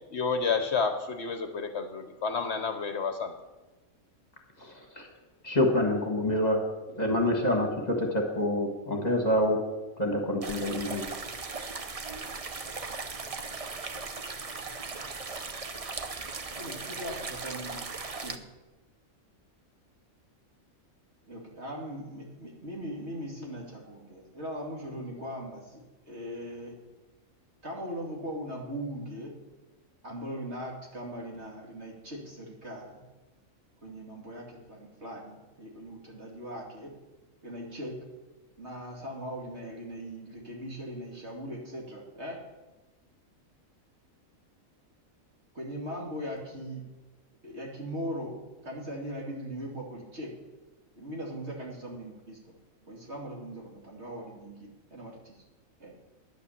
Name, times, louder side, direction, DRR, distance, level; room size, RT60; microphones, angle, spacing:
voice 1, 0.1-3.3, left 5 dB, 55° left, 7 dB, 1.0 m, -30 dB
voice 2, 4.6-5.1 5.4-6.6 6.9-9.6 10.0-11.1, left 1 dB, 30° left, 2 dB, 1.6 m, -27 dB
sound 1, 10.4-18.4, right 4 dB, 35° right, 0.6 m, -38 dB
voice 3, 16.6-17.8 18.2-18.4 21.3-26.7 27.6-29.3 30.0-33.0 33.8-36.9 37.4-38.0 38.6-42.4 45.5-46.8 47.4-48.3 48.6-50.3 50.9-52.5 52.9-55.4 55.8-55.9, equal, 50° right, -2 dB, 2.8 m, -39 dB
10.5 x 8.4 x 7.2 m, 1.1 s
omnidirectional pair, 1.4 m